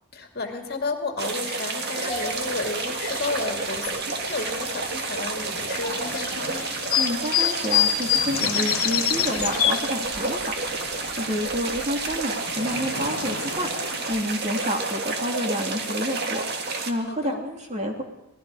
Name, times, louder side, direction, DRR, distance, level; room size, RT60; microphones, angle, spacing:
voice 1, 0.1-6.7 17.1-17.4, left 3 dB, 45° left, 3 dB, 2.4 m, -32 dB
sound 1, 1.2-16.9, right 3 dB, 45° right, 1.8 m, -30 dB
Bird vocalization bird call bird song, 2.1-11.7, left 2 dB, 20° left, 4.2 m, -42 dB
sound 2, 5.8-10.4 10.7-11.8 12.1-14.7, left 10 dB, 70° left, 1.4 m, -26 dB
voice 2, 7.0-13.7 14.1-18.0, equal, 30° right, 1 dB, 2.9 m, -29 dB
27.5 x 19.0 x 5.0 m, 0.87 s
head